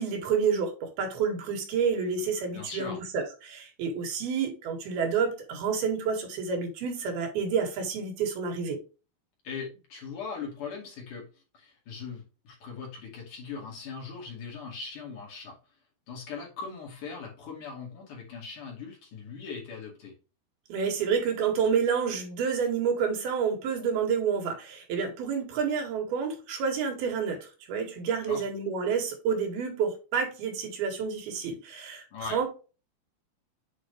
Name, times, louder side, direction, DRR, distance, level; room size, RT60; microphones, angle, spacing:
voice 1, 0.0-8.8 20.7-32.5, right 6 dB, 80° right, 3.7 m, -29 dB
voice 2, 2.5-3.0 9.4-11.3 11.5-15.6 16.1-20.1 28.3-28.4 32.1-32.4, left 5 dB, 55° left, 3.6 m, -40 dB
8.1 x 4.7 x 3.3 m
omnidirectional pair, 4.4 m